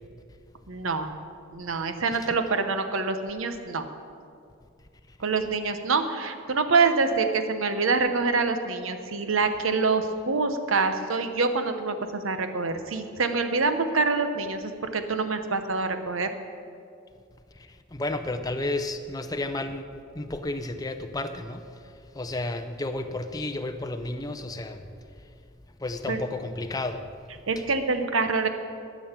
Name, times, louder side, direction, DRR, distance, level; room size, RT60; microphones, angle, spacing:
voice 1, 0.7-1.1 1.5-3.8 5.2-16.3 26.1-26.2 27.5-28.5, right 4 dB, 85° right, 8 dB, 0.9 m, -26 dB
voice 2, 17.5-19.9 20.1-24.9 25.2-25.3 25.8-27.0, left 2 dB, 20° left, 8 dB, 0.6 m, -32 dB
12.5 x 6.3 x 8.0 m, 2.4 s
head